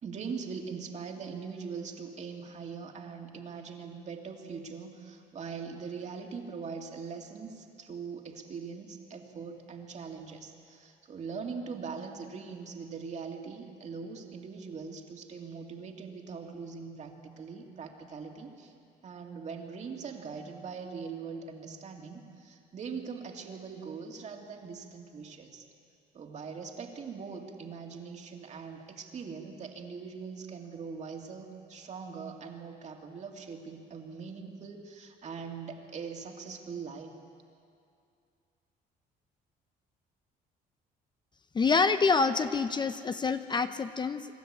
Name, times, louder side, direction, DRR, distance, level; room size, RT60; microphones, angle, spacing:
voice 1, 0.0-18.7 19.0-25.7 26.1-37.1, right 5 dB, 45° right, 3 dB, 2.3 m, -41 dB
voice 2, 41.5-44.3, left 4 dB, 25° left, 10 dB, 0.6 m, -26 dB
25.0 x 12.5 x 8.7 m, 2.4 s
cardioid pair, 110°, 17 cm